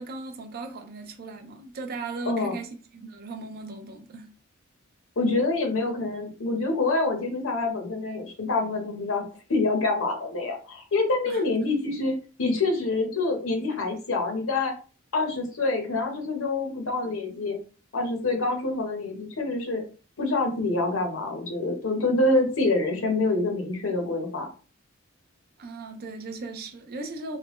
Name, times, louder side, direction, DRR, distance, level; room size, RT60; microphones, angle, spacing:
voice 1, 0.0-4.3 11.3-11.4 25.6-27.4, right 3 dB, 45° right, 0.5 m, -37 dB
voice 2, 5.2-9.2 9.5-12.1 12.4-14.7 15.1-17.6 17.9-19.8 20.2-24.5, left 3 dB, 70° left, 0.8 m, -26 dB
3.2 x 2.1 x 3.0 m
head